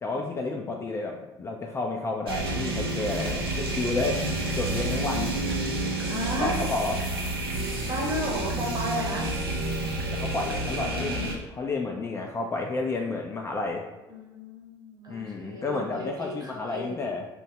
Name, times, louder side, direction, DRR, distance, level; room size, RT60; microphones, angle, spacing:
voice 1, 0.0-4.2 4.5-5.3 6.4-7.0 10.1-13.8 15.1-17.3, left 3 dB, 20° left, 1 dB, 0.3 m, -31 dB
sound 1, 2.3-11.3, right 2 dB, 80° right, 0.4 m, -29 dB
voice 2, 6.1-6.6 7.8-9.4 14.1-17.1, equal, 35° right, -2 dB, 0.9 m, -33 dB
2.6 x 2.2 x 2.8 m, 1.0 s
figure-of-eight pair, 55°, 12 cm